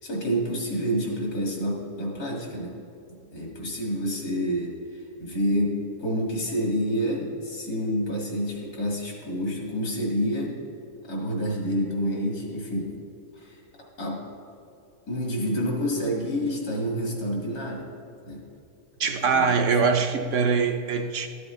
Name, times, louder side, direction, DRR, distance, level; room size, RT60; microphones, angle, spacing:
voice 1, 0.0-2.7 3.3-10.5 11.0-12.9 13.3-13.6 14.0-14.2 15.1-17.8 18.3-18.4 19.3-19.5 19.8-19.9, equal, 80° left, -2 dB, 2.5 m, -28 dB
voice 2, 19.0-21.3, right 5 dB, 65° right, 5 dB, 0.8 m, -23 dB
13.0 x 7.8 x 3.1 m, 2.8 s
omnidirectional pair, 1.6 m